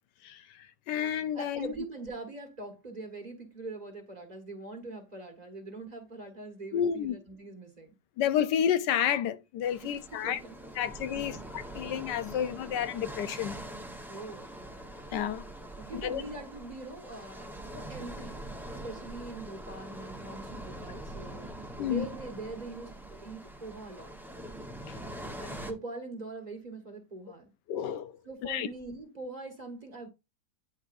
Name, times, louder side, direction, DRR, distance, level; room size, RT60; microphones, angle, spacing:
voice 1, 0.2-1.7 6.7-7.1 8.2-10.4 10.8-13.6 15.1-15.4 15.9-16.2 21.8-22.0 24.9-25.0 27.7-28.2 28.4-28.7, left 9 dB, 85° left, 1.3 m, -30 dB
voice 2, 1.3-7.9 9.8-10.6 11.1-11.4 14.1-14.5 15.8-21.5 21.8-24.1 25.4-27.5 28.2-30.1, right 3 dB, 25° right, 1.5 m, -43 dB
sound 1, 9.6-25.7, right 1 dB, ahead, 0.8 m, -43 dB
9.0 x 4.7 x 2.6 m
omnidirectional pair, 1.8 m